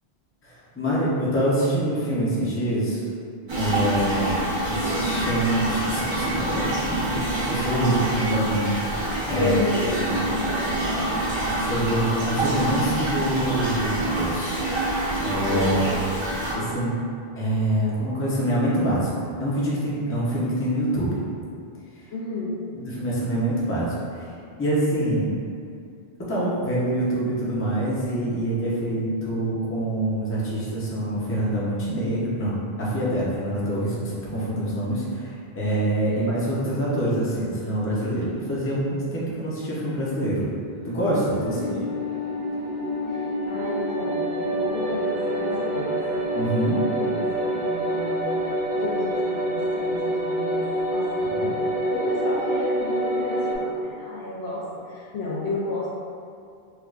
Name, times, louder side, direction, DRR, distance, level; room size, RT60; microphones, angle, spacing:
voice 1, 0.4-3.0 3.5-4.4 4.7-9.5 9.8-10.3 11.6-14.6 15.2-15.8 16.6-16.9 17.4-19.1 19.4-21.2 22.7-24.3 24.6-25.3 26.3-40.5 40.8-41.7 46.3-46.8 51.3-51.5, right 1 dB, 15° left, -7 dB, 0.5 m, -25 dB
sound 1, 3.5-16.6, right 1 dB, 35° right, 0.5 m, -26 dB
voice 2, 9.3-10.8 15.5-16.0 16.5-16.8 22.1-22.6 36.2-36.4 41.5-41.9 43.1-46.0 46.8-48.3 48.8-55.9, left 2 dB, 75° left, -7 dB, 0.8 m, -32 dB
Open Sea Morning, 40.6-53.6, equal, 65° right, 0.8 m, -27 dB
4.4 x 2.3 x 2.4 m, 2.4 s
omnidirectional pair, 1.1 m